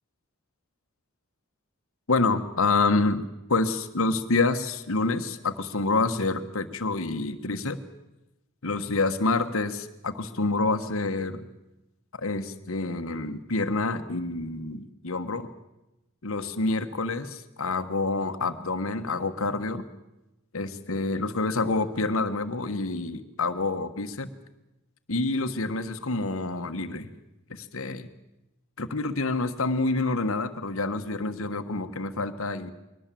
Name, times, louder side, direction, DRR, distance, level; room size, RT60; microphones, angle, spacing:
voice 1, 2.1-3.2 3.5-7.8 8.6-11.4 12.2-15.5 16.2-19.8 20.5-24.3 25.1-27.1 27.5-28.1 28.8-32.7, left 3 dB, 70° left, 9 dB, 1.4 m, -27 dB
22.5 x 18.5 x 7.6 m, 0.95 s
head